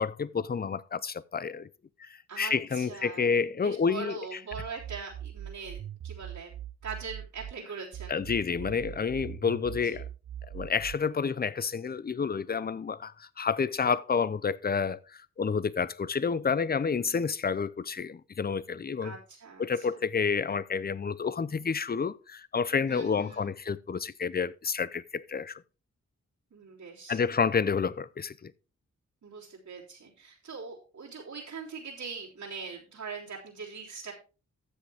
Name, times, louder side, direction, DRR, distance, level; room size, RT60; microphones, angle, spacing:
voice 1, 0.0-1.7 2.0-2.1 2.4-4.2 8.1-10.1 10.5-19.1 19.6-25.6 27.1-28.5, left 5 dB, 30° left, 0.6 m, -29 dB
voice 2, 2.3-6.5 6.8-8.2 9.8-10.0 19.0-19.9 22.9-23.5 26.5-27.2 29.2-34.1, right 5 dB, 80° right, 3.5 m, -42 dB
sound 1, 4.5-7.5 7.9-11.0, right 11 dB, 55° right, 0.4 m, -41 dB
13.5 x 7.5 x 3.5 m
cardioid pair, 75°, 29 cm